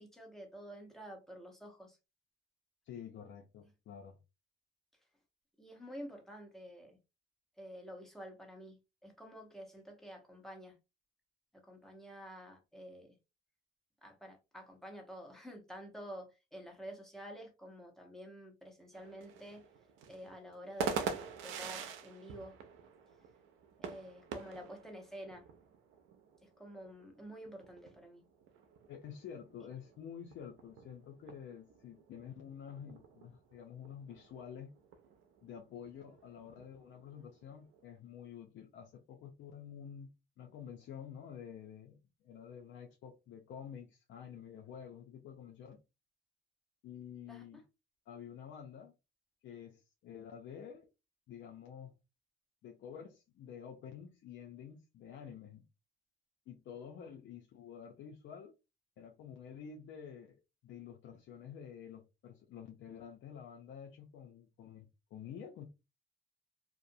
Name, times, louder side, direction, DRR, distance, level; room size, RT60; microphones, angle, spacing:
voice 1, 0.0-2.0 5.6-7.0 7.6-8.8 9.0-10.8 11.5-13.2 14.0-19.6 20.1-21.1 21.4-22.6 23.8-25.5 26.4-28.2 47.3-47.6, equal, ahead, 0.9 m, -49 dB
voice 2, 2.8-4.2 28.9-34.7 35.4-45.8 46.8-47.6 48.1-48.9 49.4-50.9 51.3-51.9 52.6-55.7 56.5-58.5 59.0-65.6, left 8 dB, 70° left, 0.5 m, -49 dB
sound 1, 18.9-37.8, right 6 dB, 90° right, 0.5 m, -46 dB
2.4 x 2.0 x 2.6 m
cardioid pair, 90°, 20 cm